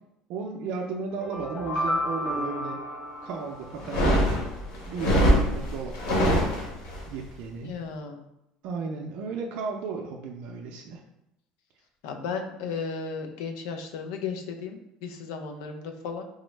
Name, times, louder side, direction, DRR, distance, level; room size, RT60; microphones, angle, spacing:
voice 1, 0.3-2.9 3.2-4.3 4.9-6.6 7.1-7.8 8.6-11.0, right 4 dB, 65° right, 1 dB, 0.4 m, -35 dB
sound 1, 1.1-4.1, left 1 dB, 25° left, 0.8 m, -32 dB
sound 2, 3.8-7.0, equal, 70° left, 1.2 m, -23 dB
voice 2, 7.6-8.3 12.0-16.2, left 5 dB, 85° left, 4 dB, 0.5 m, -35 dB
3.6 x 2.0 x 3.1 m, 0.85 s
cardioid pair, 135°, 2 cm